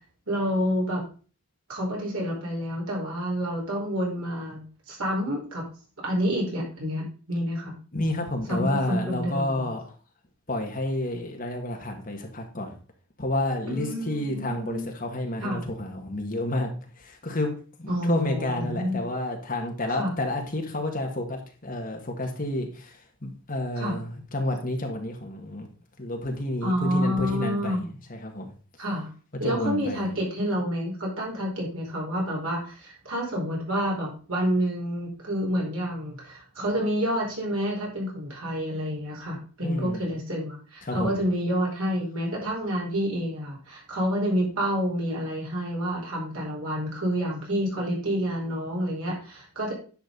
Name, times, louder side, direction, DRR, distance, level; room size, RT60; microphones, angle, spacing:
voice 1, 0.3-1.0 1.7-4.6 4.9-5.6 6.0-7.7 8.5-9.7 13.7-14.9 15.4-15.6 17.9-19.0 19.9-20.1 23.7-24.0 26.6-27.9 28.8-29.1 29.4-49.7, equal, 75° right, -3 dB, 4.6 m, -28 dB
voice 2, 7.9-9.8 10.5-12.7 13.2-16.7 17.0-17.5 17.8-22.9 23.2-25.7 26.0-27.8 28.1-28.5 29.4-30.1 39.6-40.0 40.8-41.1, left 1 dB, 40° left, 2 dB, 1.8 m, -30 dB
10.5 x 6.5 x 4.0 m, 0.37 s
head